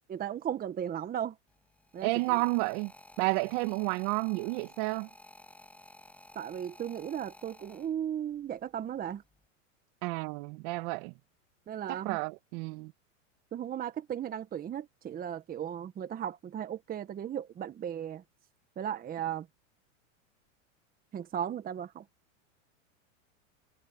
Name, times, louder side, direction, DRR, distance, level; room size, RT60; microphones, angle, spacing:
voice 1, 0.1-1.3 1.9-2.1 6.3-9.2 11.7-12.2 13.5-18.2 18.8-19.5 21.1-22.0, right 9 dB, 20° right, 1.3 m, -36 dB
sound 1, 1.5-8.3 9.1-9.5, left 1 dB, 5° left, 5.6 m, -54 dB
voice 2, 2.0-2.9 3.2-5.1 10.0-11.1 11.9-12.9, right 25 dB, 50° right, 2.0 m, -31 dB
hypercardioid pair, 125°, 39 cm